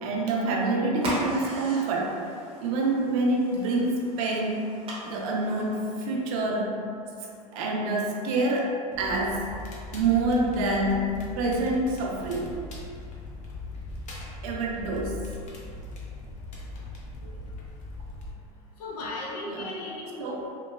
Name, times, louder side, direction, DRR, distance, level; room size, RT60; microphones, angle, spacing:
voice 1, 0.0-2.2 2.6-4.6 5.0-6.9 7.5-9.5 9.9-12.6 14.4-15.2 19.5-19.6 20.2-20.4, right 2 dB, 65° right, -1 dB, 0.5 m, -27 dB
sound 1, 0.9-6.1, right 1 dB, 30° right, 0.7 m, -38 dB
Crackle, 8.9-18.3, left 2 dB, 40° left, 0.6 m, -40 dB
voice 2, 18.8-20.5, left 2 dB, 80° left, -4 dB, 0.7 m, -36 dB
3.0 x 2.2 x 2.2 m, 2.4 s
hypercardioid pair, 100°, 20 cm